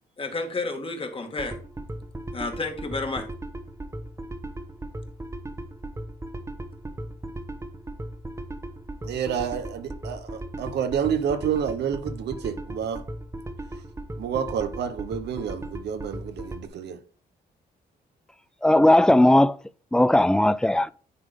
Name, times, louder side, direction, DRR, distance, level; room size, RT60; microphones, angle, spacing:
voice 1, 0.2-1.6 2.3-3.3, left 3 dB, 30° left, 2.0 m, -31 dB
sound 1, 1.4-16.7, right 1 dB, 15° right, 1.1 m, -37 dB
voice 2, 9.0-13.0 14.2-17.0, right 8 dB, 80° right, 0.9 m, -29 dB
voice 3, 18.6-19.6 19.9-20.9, left 1 dB, 5° left, 0.4 m, -17 dB
9.9 x 3.7 x 5.2 m
cardioid pair, 90°, 17 cm